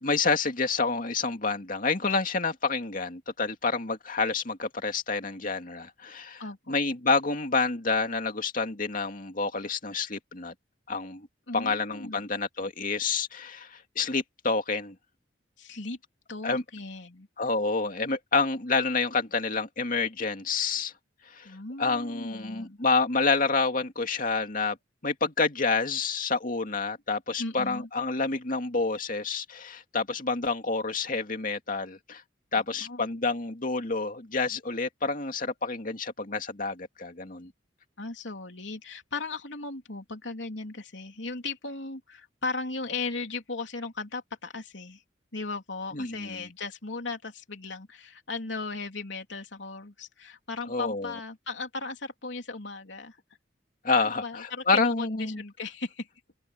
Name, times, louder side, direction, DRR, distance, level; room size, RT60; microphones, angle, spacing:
voice 1, 0.0-6.4 6.7-10.5 10.9-11.3 11.5-14.9 16.4-16.6 17.4-20.9 21.3-21.5 21.8-24.8 25.0-32.2 32.5-37.5 45.9-46.4 50.7-51.1 53.8-55.4, left 4 dB, 50° left, 2.4 m, -28 dB
voice 2, 6.4-6.7 11.5-12.2 15.6-16.0 16.3-17.3 21.4-22.8 27.4-27.9 32.5-33.0 38.0-45.0 45.3-53.2 53.9-56.1, left 3 dB, 80° left, 3.4 m, -37 dB
open air
head